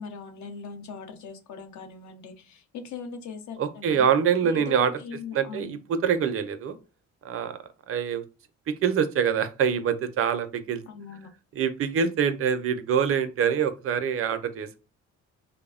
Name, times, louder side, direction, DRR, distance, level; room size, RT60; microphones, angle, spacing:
voice 1, 0.0-4.1 4.4-5.8 10.9-11.3, left 5 dB, 70° left, 7 dB, 0.6 m, -40 dB
voice 2, 3.6-4.9 5.3-6.8 7.2-7.5 7.9-8.2 8.8-10.8 11.6-14.8, right 7 dB, 50° right, 10 dB, 0.4 m, -25 dB
3.2 x 2.0 x 2.3 m, 0.31 s
cardioid pair, 90°, 30 cm